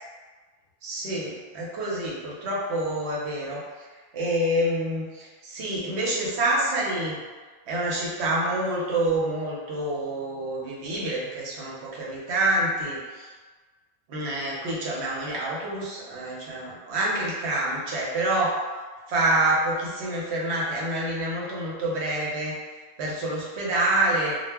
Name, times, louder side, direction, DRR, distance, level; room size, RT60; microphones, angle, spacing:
voice 1, 0.8-3.6 4.1-7.2 7.7-13.3 14.1-18.6 19.1-22.6 23.0-24.4, right 1 dB, 90° right, -4 dB, 0.9 m, -27 dB
2.1 x 2.0 x 3.3 m, 1.4 s
omnidirectional pair, 1.1 m